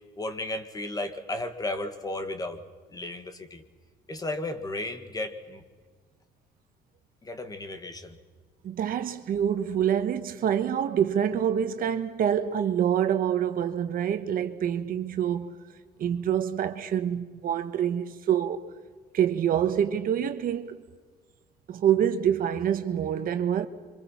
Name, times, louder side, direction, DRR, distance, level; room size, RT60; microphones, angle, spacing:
voice 1, 0.2-2.6 2.9-3.6 4.1-5.6 7.2-8.2, left 2 dB, 20° left, 2.1 m, -34 dB
voice 2, 8.6-15.6 16.0-18.6 19.1-20.8 21.7-23.7, right 9 dB, 55° right, 1.3 m, -26 dB
29.0 x 25.5 x 5.9 m
cardioid pair, 110°, 17 cm